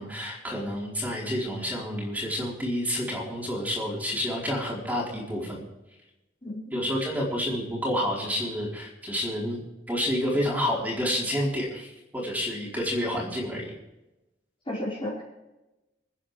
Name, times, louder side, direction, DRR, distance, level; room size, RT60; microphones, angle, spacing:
voice 1, 0.0-5.6 6.7-9.6 9.9-13.7, equal, 10° right, -3 dB, 4.4 m, -29 dB
voice 2, 6.4-6.8 14.7-15.2, left 1 dB, 30° left, -6 dB, 5.1 m, -33 dB
27.5 x 9.8 x 3.4 m, 0.99 s
head